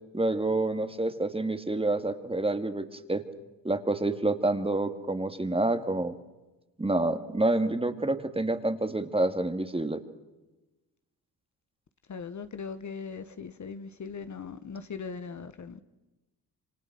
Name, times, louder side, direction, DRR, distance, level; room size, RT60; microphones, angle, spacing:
voice 1, 0.1-3.2 3.6-6.1 6.8-10.0, right 2 dB, 15° right, 2.3 m, -28 dB
voice 2, 12.1-15.8, left 5 dB, 40° left, 1.5 m, -39 dB
27.5 x 25.5 x 6.2 m
supercardioid pair, 70°, 42 cm